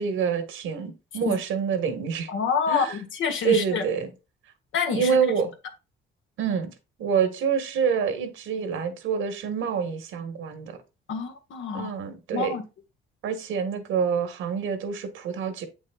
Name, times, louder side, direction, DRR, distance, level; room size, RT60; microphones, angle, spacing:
voice 1, 0.0-2.3 2.7-2.9 3.4-4.1 4.9-5.5 6.4-6.7 7.0-10.8 11.7-12.6 13.2-15.7, right 6 dB, 85° right, 1.6 m, -26 dB
voice 2, 2.3-3.8 4.7-5.2 11.1-11.9 12.3-12.6, left 6 dB, 75° left, 1.4 m, -27 dB
7.8 x 6.3 x 2.4 m
cardioid pair, 90°, 20 cm